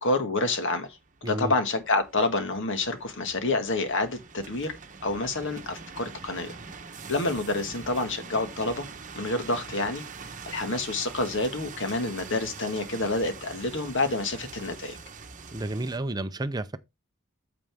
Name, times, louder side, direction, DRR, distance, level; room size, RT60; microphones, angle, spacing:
voice 1, 0.0-4.7 5.0-6.6 7.1-8.9 9.2-10.0 10.5-15.0, left 2 dB, 60° left, 1.7 m, -28 dB
sound 1, 0.8-16.0, right 5 dB, 35° right, 1.0 m, -44 dB
voice 2, 1.2-1.5 15.5-16.8, right 1 dB, 20° right, 0.5 m, -31 dB
8.9 x 6.9 x 3.5 m
head